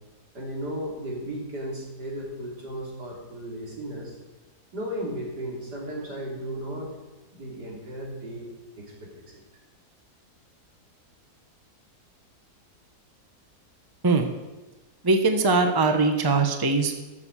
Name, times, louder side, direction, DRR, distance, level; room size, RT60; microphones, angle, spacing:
voice 1, 0.3-4.2 4.7-6.9 7.3-8.5 8.8-9.4, right 1 dB, 90° right, -2 dB, 3.8 m, -35 dB
voice 2, 15.0-17.0, right 3 dB, 15° right, 5 dB, 0.9 m, -21 dB
13.0 x 7.5 x 7.4 m, 1.1 s
omnidirectional pair, 1.7 m